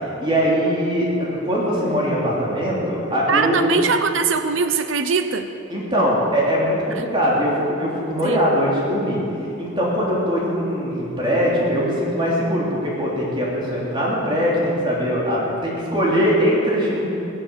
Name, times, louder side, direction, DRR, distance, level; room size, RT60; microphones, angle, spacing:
voice 1, 0.0-3.7 5.7-9.2 9.6-17.0, equal, 25° right, -5 dB, 3.1 m, -21 dB
voice 2, 3.3-5.5 6.9-7.1 8.2-8.4, right 5 dB, 65° right, 9 dB, 0.7 m, -22 dB
21.5 x 7.6 x 7.7 m, 2.9 s
head